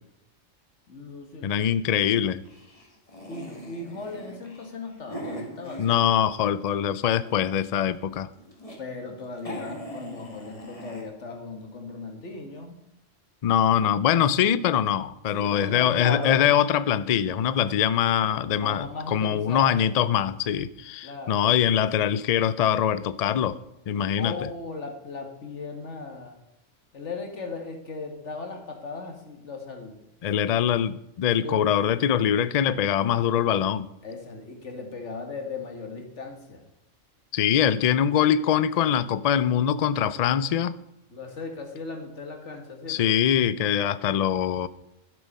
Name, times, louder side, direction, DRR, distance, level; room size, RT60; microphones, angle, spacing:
voice 1, 0.9-1.5 3.3-6.0 8.8-12.8 15.3-16.5 18.5-20.0 21.0-21.5 24.2-26.4 26.9-30.1 31.4-31.6 34.0-36.7 41.1-43.2, left 3 dB, 65° left, 4 dB, 2.0 m, -37 dB
voice 2, 1.4-2.4 5.8-8.3 13.4-23.6 23.9-24.3 30.2-33.9 37.3-40.8 42.9-44.7, left 9 dB, 85° left, 16 dB, 0.3 m, -23 dB
sound 1, 1.9-6.5 6.9-7.7 8.2-8.8 9.1-9.2 9.4-11.0, equal, 25° left, 2.2 m, -41 dB
12.0 x 7.7 x 5.4 m, 0.90 s
omnidirectional pair, 1.3 m